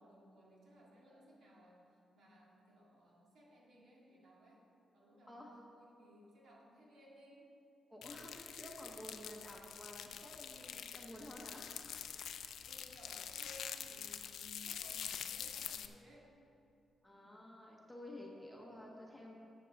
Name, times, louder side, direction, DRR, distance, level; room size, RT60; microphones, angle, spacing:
voice 1, 0.0-4.7 4.9-7.5 12.6-16.3, equal, 65° right, -3 dB, 2.1 m, -60 dB
voice 2, 7.9-11.9 12.4-12.7 17.0-19.4, left 1 dB, 5° left, -2 dB, 1.1 m, -52 dB
sound 1, 8.0-15.9, left 8 dB, 75° left, 0.4 m, -46 dB
12.5 x 7.7 x 4.1 m, 2.7 s
wide cardioid pair, 155°, 0 cm